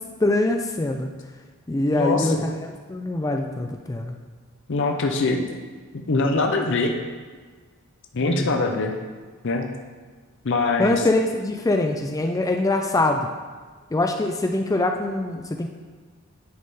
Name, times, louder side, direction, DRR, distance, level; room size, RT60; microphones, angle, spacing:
voice 1, 0.2-1.1 1.7-2.4 2.9-4.2 8.2-8.5 10.8-13.3 13.9-15.7, left 2 dB, 15° left, 4 dB, 0.3 m, -23 dB
voice 2, 1.9-2.5 4.7-5.4 6.1-6.9 8.1-8.9 9.4-9.7 10.4-11.0, left 3 dB, 60° left, 3 dB, 0.6 m, -23 dB
9.4 x 3.7 x 4.1 m, 1.5 s
head